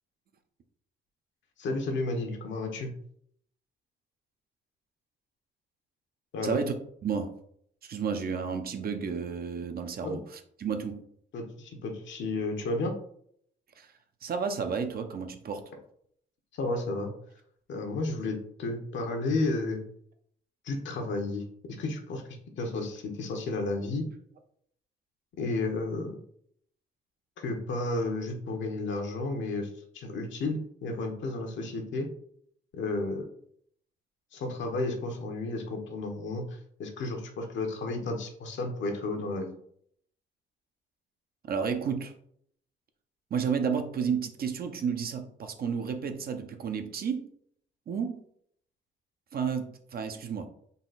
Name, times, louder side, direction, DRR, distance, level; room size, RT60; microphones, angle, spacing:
voice 1, 1.6-2.9 6.3-6.6 10.0-10.2 11.3-12.9 16.6-17.1 17.7-19.8 20.6-21.4 21.8-22.2 22.6-24.0 25.4-26.2 27.4-32.1 32.7-33.2 34.3-39.5, left 2 dB, 70° left, 3 dB, 1.0 m, -32 dB
voice 2, 6.4-6.7 7.0-7.3 7.8-11.0 13.8-13.9 14.2-15.6 41.5-42.1 43.3-47.3 47.9-48.2 49.3-50.5, right 6 dB, 50° right, 6 dB, 0.6 m, -31 dB
4.0 x 2.3 x 4.0 m, 0.65 s
cardioid pair, 90°, 20 cm